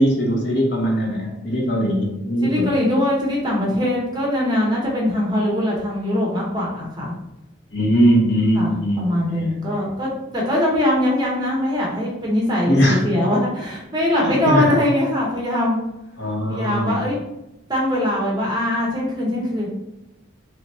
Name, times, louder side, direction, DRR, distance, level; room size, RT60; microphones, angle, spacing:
voice 1, 0.0-2.7 7.7-9.5 12.7-13.0 14.2-14.8 16.2-17.0, equal, 55° left, -1 dB, 0.9 m, -20 dB
voice 2, 2.4-7.1 8.6-15.8 16.5-17.2 17.7-19.7, left 1 dB, 20° right, -3 dB, 1.0 m, -22 dB
3.3 x 3.0 x 4.2 m, 0.93 s
head